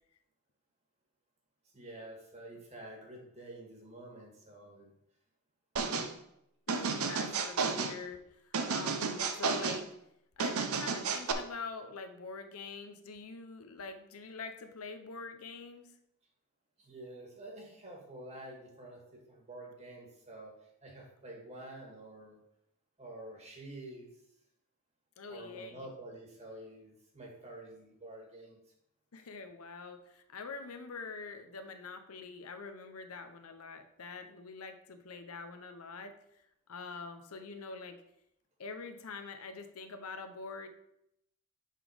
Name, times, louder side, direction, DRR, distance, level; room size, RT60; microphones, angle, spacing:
voice 1, 1.7-4.9 16.8-20.5 20.8-22.4 23.0-24.1 25.3-28.6, right 1 dB, 30° right, 0 dB, 1.8 m, -48 dB
sound 1, 5.8-6.1 6.7-8.0 8.5-9.8 10.4-11.3, right 5 dB, 75° right, 0.7 m, -32 dB
voice 2, 6.7-9.9 10.4-15.9 25.2-25.9 29.1-36.1 36.7-38.0 38.6-40.7, left 4 dB, 80° left, 8 dB, 0.8 m, -45 dB
5.8 x 5.1 x 5.0 m, 0.79 s
head